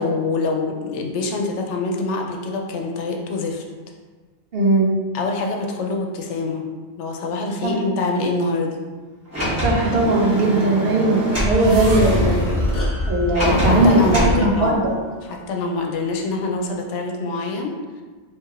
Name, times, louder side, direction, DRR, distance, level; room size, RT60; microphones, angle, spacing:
voice 1, 0.0-3.6 5.1-6.7 7.0-8.8 13.4-14.8 15.3-17.8, left 3 dB, 85° left, 2 dB, 0.9 m, -25 dB
voice 2, 4.5-4.9 7.6-7.7 9.6-12.5 13.1-14.0 14.3-14.8, right 2 dB, 65° right, -2 dB, 0.8 m, -18 dB
Sliding door, 9.3-11.6 13.3-14.4, equal, 15° right, 1.0 m, -23 dB
sound 1, 10.7-14.8, equal, 40° right, 0.5 m, -25 dB
sound 2, 11.6-14.4 14.9-15.0, equal, 15° left, 0.6 m, -34 dB
4.7 x 2.7 x 2.3 m, 1.4 s
omnidirectional pair, 1.2 m